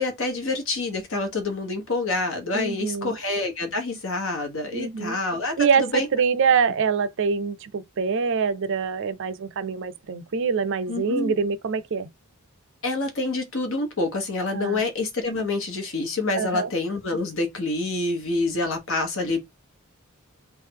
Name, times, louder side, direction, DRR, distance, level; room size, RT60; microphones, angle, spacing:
voice 1, 0.0-6.1 10.9-11.3 12.8-19.4, left 2 dB, 60° left, 1.3 m, -27 dB
voice 2, 2.5-3.2 4.7-5.2 5.6-12.1 14.5-14.8 16.3-16.7, right 6 dB, 55° right, 0.5 m, -25 dB
3.7 x 2.4 x 4.6 m
head